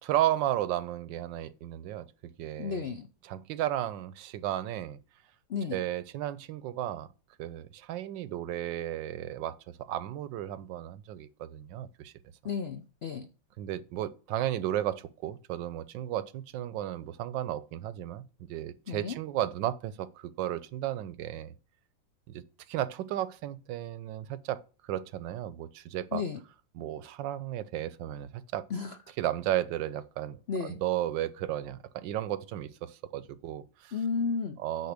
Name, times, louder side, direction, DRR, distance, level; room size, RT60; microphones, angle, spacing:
voice 1, 0.0-2.1 2.4-2.8 3.2-5.0 5.7-7.1 7.4-12.1 13.6-18.2 18.5-21.5 22.3-22.4 22.7-26.2 26.7-28.6 29.2-33.9 34.6-34.9, right 12 dB, 85° right, 1.4 m, -34 dB
voice 2, 2.6-3.1 5.5-5.8 12.4-13.3 18.9-19.2 26.1-26.4 28.7-29.0 30.5-30.8 33.9-34.6, left 5 dB, 70° left, 0.6 m, -33 dB
9.4 x 4.6 x 6.6 m
omnidirectional pair, 2.0 m